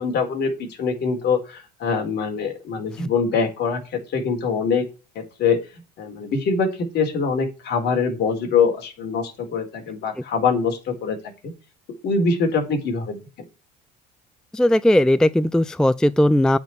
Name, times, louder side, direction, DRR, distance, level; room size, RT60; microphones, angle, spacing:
voice 1, 0.0-4.8 5.1-5.6 6.0-6.7 6.9-11.2 12.0-13.2, left 5 dB, 55° left, 4.3 m, -23 dB
voice 2, 14.5-16.6, left 1 dB, 5° left, 0.4 m, -17 dB
9.0 x 5.4 x 7.9 m
hypercardioid pair, 80°, 21 cm